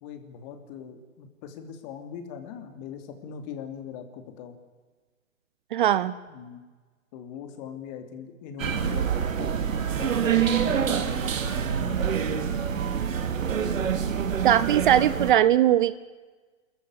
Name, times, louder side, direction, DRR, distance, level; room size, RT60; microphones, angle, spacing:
voice 1, 0.0-4.6 6.3-6.6 7.1-9.5 9.9-12.2, left 7 dB, 35° left, 7 dB, 3.0 m, -41 dB
voice 2, 5.7-6.1 14.4-15.9, right 11 dB, 40° right, 16 dB, 0.7 m, -20 dB
sound 1, 8.6-15.3, right 8 dB, 75° right, 2.7 m, -26 dB
26.5 x 14.5 x 9.8 m, 1.4 s
hypercardioid pair, 145°, 40 cm